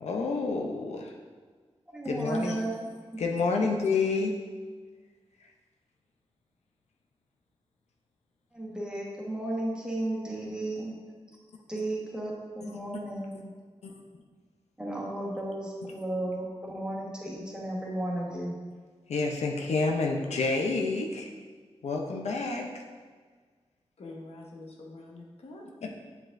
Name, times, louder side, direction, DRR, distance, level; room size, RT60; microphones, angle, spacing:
voice 1, 0.0-1.1 2.1-2.6 3.2-4.3 13.8-14.0 19.1-21.3 21.8-22.7, left 3 dB, 90° left, 1 dB, 0.6 m, -28 dB
voice 2, 1.9-2.8 3.1-3.2 3.6-3.7 8.5-11.0 11.7-13.5 14.8-18.6, right 1 dB, 10° right, -4 dB, 1.3 m, -34 dB
voice 3, 24.0-25.9, left 2 dB, 65° left, -1 dB, 1.0 m, -46 dB
7.7 x 4.9 x 2.6 m, 1.5 s
wide cardioid pair, 80°, 11 cm